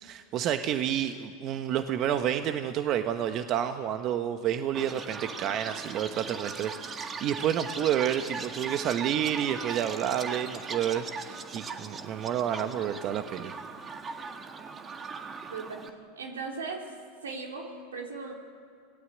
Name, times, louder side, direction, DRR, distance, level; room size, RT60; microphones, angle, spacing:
voice 1, 0.0-13.6, right 10 dB, 45° right, 8 dB, 1.2 m, -29 dB
Chirp tweet, 4.7-15.9, right 4 dB, 30° right, 1.9 m, -39 dB
voice 2, 15.5-15.8 16.2-16.9 17.2-18.3, right 4 dB, 85° right, 1 dB, 3.7 m, -37 dB
27.0 x 18.0 x 8.1 m, 2.3 s
hypercardioid pair, 95°, 0 cm